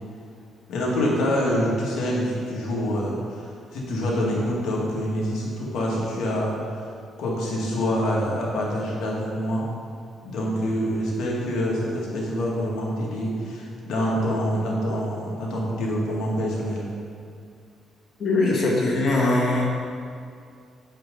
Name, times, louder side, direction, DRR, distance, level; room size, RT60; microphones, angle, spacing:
voice 1, 0.7-6.6 7.2-9.7 10.2-16.9, equal, 80° left, -3 dB, 1.9 m, -26 dB
voice 2, 18.2-19.6, left 2 dB, 60° left, -3 dB, 1.8 m, -21 dB
7.7 x 6.8 x 3.8 m, 2.3 s
cardioid pair, 90°, 0 cm